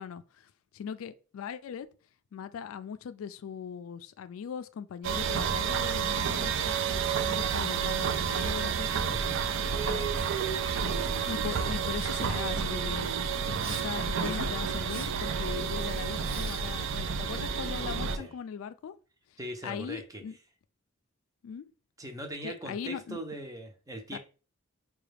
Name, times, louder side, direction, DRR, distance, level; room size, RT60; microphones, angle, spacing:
voice 1, 0.0-1.9 2.3-9.2 9.9-10.1 11.3-13.1 13.8-18.9 19.3-20.4 21.4-21.7 22.4-23.2 24.1-24.2, left 7 dB, 85° left, 0.3 m, -40 dB
sound 1, 5.0-18.2, right 6 dB, 65° right, 0.4 m, -30 dB
voice 2, 9.1-9.4 18.2-18.3 19.4-20.2 22.0-24.2, right 1 dB, 15° right, 0.6 m, -40 dB
Respiratory sounds, 13.6-13.9 14.2-14.5 14.8-15.1 15.5-16.6 16.9-18.3, right 1 dB, 80° right, 0.9 m, -42 dB
4.7 x 2.3 x 3.2 m
head